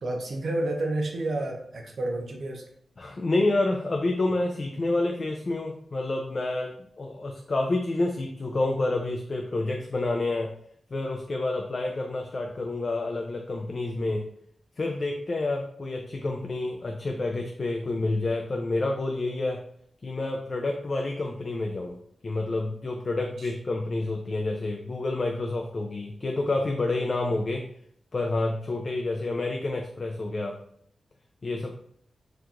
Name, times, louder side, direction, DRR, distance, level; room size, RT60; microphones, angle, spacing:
voice 1, 0.0-2.6 23.4-23.5, right 2 dB, 70° right, 1 dB, 0.5 m, -30 dB
voice 2, 3.0-6.7 7.0-10.5 10.9-14.2 14.8-19.6 20.0-22.0 22.2-27.6 28.1-30.6 31.4-31.7, left 2 dB, 45° left, 1 dB, 0.3 m, -28 dB
2.8 x 2.4 x 3.5 m, 0.67 s
wide cardioid pair, 85°, 0 cm